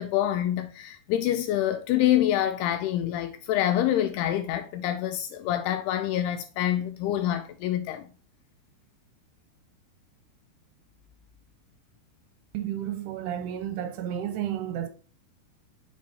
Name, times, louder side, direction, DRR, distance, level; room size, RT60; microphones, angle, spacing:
voice 1, 0.0-8.1, left 12 dB, 85° left, 2.4 m, -26 dB
voice 2, 12.5-14.9, right 10 dB, 85° right, 2.6 m, -32 dB
7.5 x 5.3 x 2.8 m
omnidirectional pair, 5.0 m